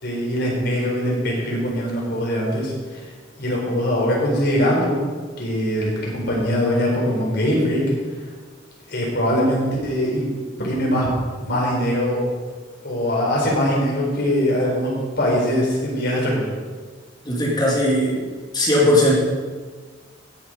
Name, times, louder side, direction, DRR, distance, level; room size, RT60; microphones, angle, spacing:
voice 1, 0.0-3.0 3.4-5.0 5.4-7.8 8.9-10.3 10.6-11.1 11.4-12.2 12.8-16.4, equal, 60° left, -3 dB, 4.4 m, -22 dB
voice 2, 17.2-18.2 18.5-19.2, left 1 dB, 20° left, -4 dB, 2.4 m, -18 dB
16.5 x 7.4 x 5.3 m, 1.5 s
head